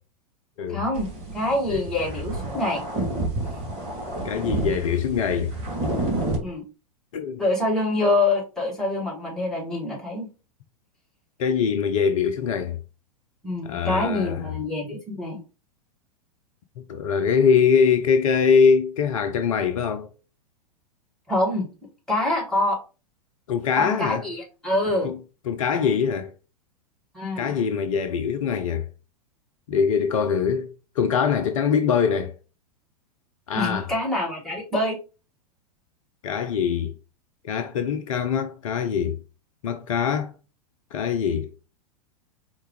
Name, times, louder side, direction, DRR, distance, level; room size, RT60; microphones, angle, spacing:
voice 1, 0.7-1.1 1.3-2.8 6.4-6.6 7.4-10.3 13.4-15.4 21.3-21.7 22.1-22.8 23.8-25.1 27.1-27.5 33.5-35.0, left 2 dB, ahead, 2.1 m, -25 dB
sound 1, 0.9-6.4, right 2 dB, 50° right, 2.1 m, -29 dB
voice 2, 4.2-5.5 7.1-7.4 11.4-12.8 13.6-14.5 16.8-20.1 23.5-24.2 25.0-25.2 25.5-26.3 27.4-28.8 29.7-32.3 33.5-33.9 36.2-36.9 37.4-39.2 39.6-40.3 40.9-41.6, left 6 dB, 55° left, 0.6 m, -23 dB
4.6 x 3.6 x 3.2 m
figure-of-eight pair, 95°, 20 cm